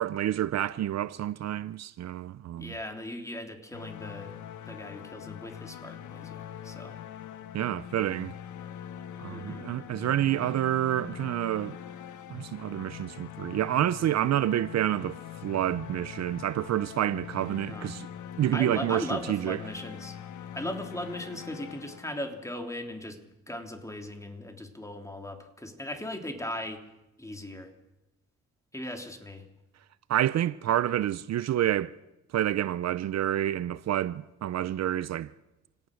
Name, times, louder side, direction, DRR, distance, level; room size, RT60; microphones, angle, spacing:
voice 1, 0.0-2.7 7.5-8.3 9.2-11.8 12.3-18.1 18.4-19.6 30.1-31.9 32.3-35.3, right 12 dB, 60° right, 0.7 m, -28 dB
voice 2, 2.6-4.4 4.7-7.0 9.3-9.7 12.3-12.4 17.7-17.9 18.5-20.2 20.5-26.8 27.2-27.7 28.7-29.4, left 1 dB, 10° left, 3.2 m, -38 dB
sound 1, 3.7-22.6, left 10 dB, 75° left, 1.5 m, -43 dB
26.5 x 17.5 x 6.5 m
cardioid pair, 90°, 30 cm